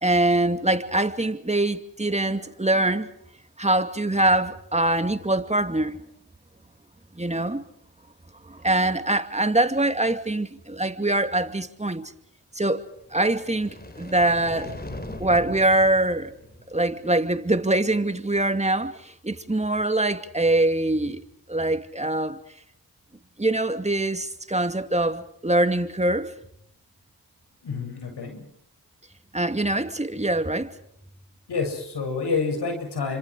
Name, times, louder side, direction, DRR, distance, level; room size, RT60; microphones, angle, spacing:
voice 1, 0.0-3.1 3.6-6.0 7.2-7.6 8.4-12.0 12.5-12.8 13.1-14.7 15.2-16.3 16.7-21.2 21.5-22.4 23.4-26.3 29.3-30.7, right 2 dB, 15° right, 2.5 m, -23 dB
sound 1, 13.0-17.2, left 1 dB, 25° left, 3.8 m, -40 dB
voice 2, 27.6-28.5 31.5-33.2, left 4 dB, 75° left, 7.9 m, -28 dB
30.0 x 26.0 x 5.0 m
supercardioid pair, 45°, 41 cm